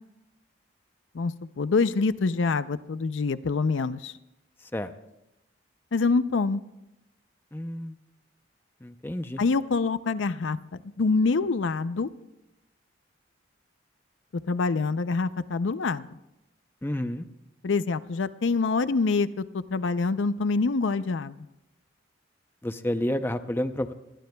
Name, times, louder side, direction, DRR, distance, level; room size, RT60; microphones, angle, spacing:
voice 1, 1.1-4.1 5.9-6.6 9.4-10.6 11.0-12.1 14.5-16.1 17.6-21.3, left 4 dB, 75° left, 14 dB, 0.5 m, -25 dB
voice 2, 4.6-4.9 7.5-8.0 8.8-9.4 16.8-17.2 22.6-23.9, left 1 dB, 10° left, 9 dB, 0.6 m, -30 dB
26.5 x 20.0 x 2.3 m, 0.91 s
head